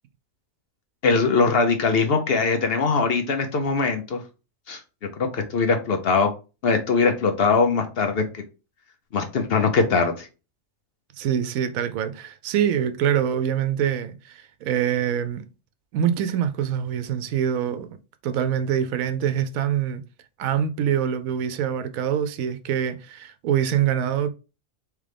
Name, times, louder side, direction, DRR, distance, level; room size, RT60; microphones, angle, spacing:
voice 1, 1.0-4.2 4.7-4.8 5.2-6.3 6.6-8.4 9.1-10.3, left 4 dB, 55° left, 0.7 m, -21 dB
voice 2, 11.2-15.5 15.9-18.0 18.2-20.0 20.4-24.3, right 9 dB, 90° right, 1.0 m, -25 dB
3.7 x 3.2 x 3.3 m
omnidirectional pair, 1.4 m